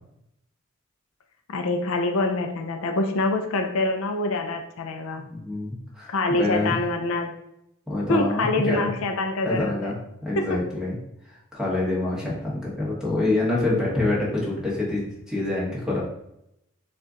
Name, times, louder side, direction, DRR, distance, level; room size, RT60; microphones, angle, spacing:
voice 1, 1.5-5.2 6.1-7.3 8.1-9.9 10.4-10.6, left 2 dB, 70° left, 5 dB, 0.4 m, -25 dB
voice 2, 5.2-6.7 7.9-8.9 9.4-9.9 10.2-10.9 11.5-16.0, left 2 dB, 5° right, -5 dB, 1.1 m, -26 dB
4.2 x 2.4 x 3.7 m, 0.80 s
head